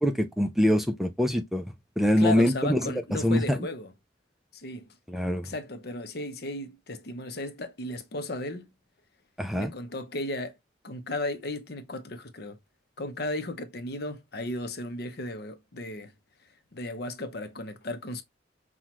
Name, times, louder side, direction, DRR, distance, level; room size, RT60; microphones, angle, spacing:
voice 1, 0.0-1.6 2.0-3.6 5.1-5.5 9.4-9.7, equal, ahead, 0.4 m, -24 dB
voice 2, 2.2-3.9 4.5-4.9 5.4-8.7 9.5-10.5 10.8-12.6 13.0-16.1 16.7-18.2, left 2 dB, 55° left, 0.8 m, -35 dB
5.8 x 2.4 x 3.0 m
head